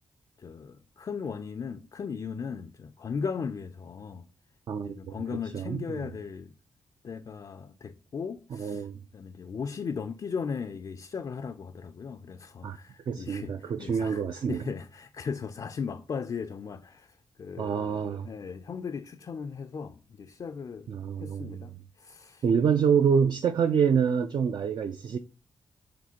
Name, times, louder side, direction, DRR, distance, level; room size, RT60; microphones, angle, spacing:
voice 1, 0.4-4.3 4.8-6.5 7.0-8.9 9.1-20.9 21.2-21.7 22.0-22.4, left 6 dB, 45° left, 0.3 m, -37 dB
voice 2, 4.7-5.1 5.5-6.0 8.5-8.9 12.6-12.8 13.1-14.6 17.6-18.3 20.9-21.6 22.4-25.2, right 7 dB, 55° right, 0.3 m, -26 dB
5.0 x 3.3 x 2.8 m
supercardioid pair, 45°, 9 cm